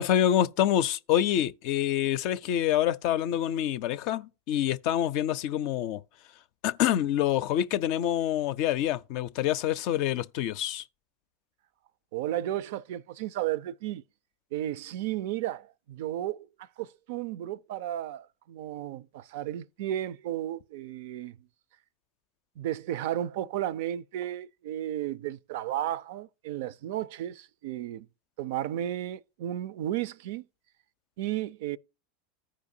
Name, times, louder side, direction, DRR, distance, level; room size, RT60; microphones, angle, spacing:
voice 1, 0.0-6.0 6.6-10.8, left 11 dB, 60° left, 0.4 m, -26 dB
voice 2, 12.1-14.0 14.5-21.4 22.6-28.1 28.4-30.4 31.2-31.8, right 12 dB, 70° right, 0.4 m, -33 dB
14.5 x 5.0 x 2.7 m
hypercardioid pair, 100°, 0 cm